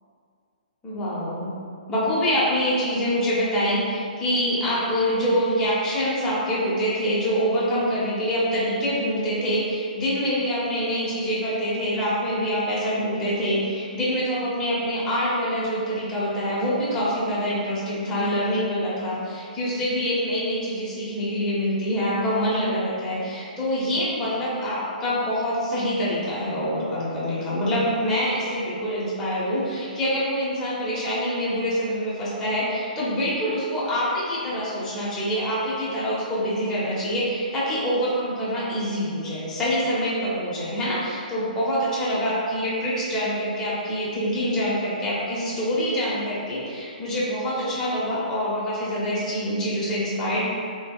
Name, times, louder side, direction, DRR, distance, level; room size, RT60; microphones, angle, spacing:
voice 1, 0.8-1.5 1.9-50.4, equal, 10° left, -9 dB, 0.8 m, -25 dB
3.4 x 2.9 x 2.2 m, 2.3 s
hypercardioid pair, 145°, 5 cm